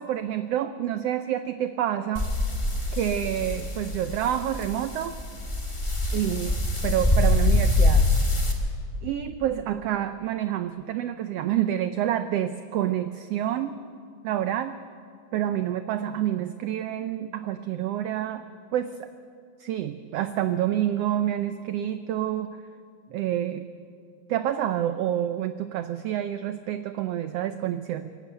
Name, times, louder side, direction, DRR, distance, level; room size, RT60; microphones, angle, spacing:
voice 1, 0.0-2.3 2.9-5.2 6.1-6.6 6.8-8.1 9.0-13.8 14.2-14.8 15.3-18.4 18.7-19.1 19.6-22.6 23.1-23.6 24.3-28.1, right 11 dB, 85° right, 11 dB, 1.3 m, -28 dB
sound 1, 2.1-8.5, left 2 dB, 15° left, 1.1 m, -24 dB
23.0 x 13.5 x 9.2 m, 2.3 s
omnidirectional pair, 3.5 m